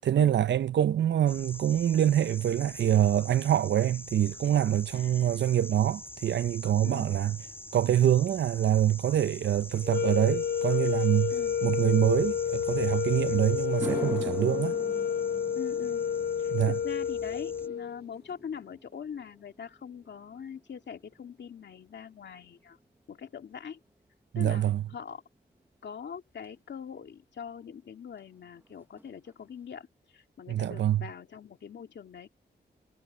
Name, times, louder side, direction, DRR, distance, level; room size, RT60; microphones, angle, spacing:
voice 1, 0.0-7.4 7.7-11.3 11.6-14.7 16.5-16.7 24.3-24.8 30.5-31.1, right 11 dB, 85° right, 0.5 m, -25 dB
sound 1, 1.3-17.7, left 1 dB, 10° left, 5.1 m, -45 dB
voice 2, 4.9-5.4 6.8-7.2 11.3-11.6 13.3-13.5 15.5-16.1 16.4-22.8 23.1-23.8 24.3-25.2 25.8-32.3, left 7 dB, 80° left, 2.5 m, -43 dB
sound 2, 9.8-18.0, left 7 dB, 65° left, 0.4 m, -30 dB
sound 3, 13.6-22.1 22.4-22.8 26.4-26.5 28.2-28.3 28.6-28.7 29.0-29.5, right 1 dB, 10° right, 1.0 m, -44 dB
wide cardioid pair, 140°, 18 cm